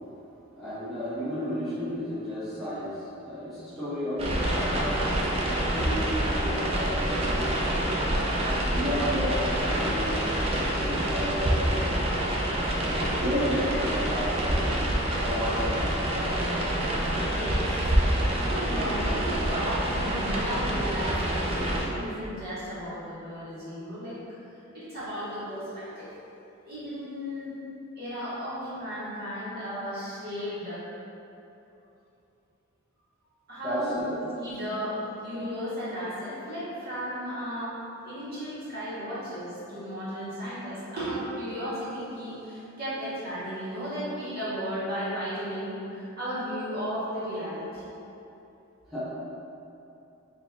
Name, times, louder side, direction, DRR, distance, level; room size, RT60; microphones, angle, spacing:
voice 1, 0.6-8.0 8.7-11.9 12.8-15.0 15.2-16.5 33.6-34.2 48.9-49.0, equal, ahead, -14 dB, 0.9 m, -33 dB
sound 1, 4.2-21.8, right 1 dB, 30° right, 0.4 m, -27 dB
voice 2, 17.3-17.7 18.0-24.2 24.7-26.1 26.7-27.5 28.0-30.8 33.5-37.7 38.0-47.8, equal, 45° right, -12 dB, 1.5 m, -34 dB
4.1 x 2.8 x 3.4 m, 2.8 s
head